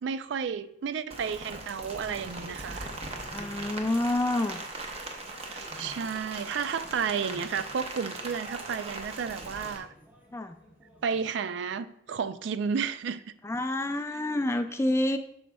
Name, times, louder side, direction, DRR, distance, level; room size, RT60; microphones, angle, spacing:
voice 1, 0.0-2.9 5.4-9.9 11.0-13.2, right 6 dB, 70° right, 0.3 m, -32 dB
Rain, 1.1-9.8, right 2 dB, 30° right, 0.7 m, -40 dB
sound 1, 1.8-11.3, equal, 10° right, 1.0 m, -53 dB
voice 2, 3.3-4.6 10.3-10.6 13.4-15.2, left 1 dB, 15° left, 0.3 m, -28 dB
8.1 x 6.3 x 2.3 m
head